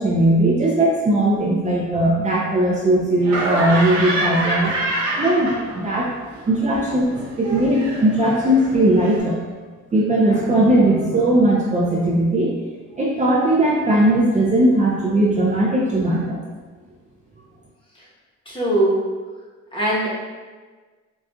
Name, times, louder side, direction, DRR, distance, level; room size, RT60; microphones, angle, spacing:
voice 1, 0.0-4.7 5.1-6.1 6.5-9.4 9.9-12.5 13.0-16.4, right 1 dB, 25° right, -6 dB, 0.5 m, -18 dB
Laughter, 3.2-6.0 6.3-9.2, right 1 dB, 70° right, 1.1 m, -26 dB
voice 2, 18.5-19.1 19.7-20.1, right 1 dB, 15° left, -6 dB, 1.0 m, -20 dB
4.0 x 2.4 x 2.3 m, 1.4 s
cardioid pair, 90°, 30 cm